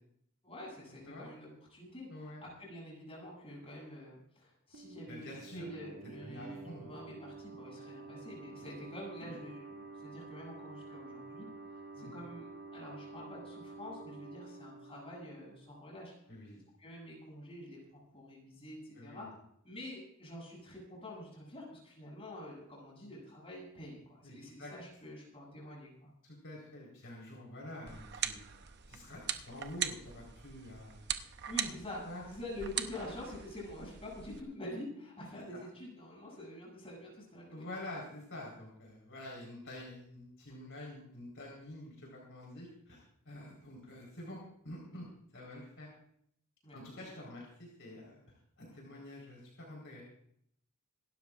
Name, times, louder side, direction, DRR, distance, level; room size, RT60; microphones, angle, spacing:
voice 1, 0.4-16.1 16.5-19.3 19.6-26.1 31.5-37.7 43.3-43.6 46.6-47.0, left 1 dB, 25° left, -3 dB, 8.0 m, -47 dB
voice 2, 2.1-2.4 5.1-5.7 6.0-6.9 9.2-9.3 12.0-12.1 16.3-16.6 18.9-19.3 24.2-24.7 26.2-28.4 28.9-31.1 31.5-31.7 32.0-32.2 37.5-45.1 45.3-45.9 46.7-48.2 48.6-50.0, left 1 dB, 55° left, -2 dB, 4.3 m, -47 dB
sound 1, 4.7-16.2, right 3 dB, 80° right, 2.4 m, -50 dB
sound 2, 27.9-34.4, right 9 dB, 50° right, 0.8 m, -41 dB
26.5 x 13.0 x 2.5 m, 0.69 s
head